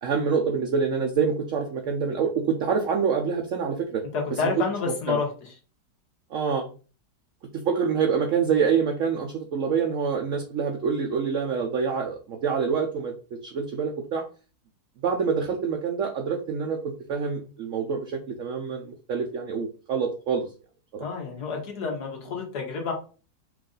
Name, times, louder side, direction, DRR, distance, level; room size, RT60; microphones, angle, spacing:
voice 1, 0.0-4.0 4.3-4.5 5.1-5.2 6.3-6.6 7.5-13.1 13.4-14.2 15.0-20.5 20.9-21.1, right 6 dB, 65° right, 3 dB, 0.8 m, -26 dB
voice 2, 4.1-5.3 21.0-22.9, left 5 dB, 65° left, 1 dB, 1.7 m, -29 dB
4.6 x 2.6 x 3.8 m, 0.37 s
omnidirectional pair, 1.9 m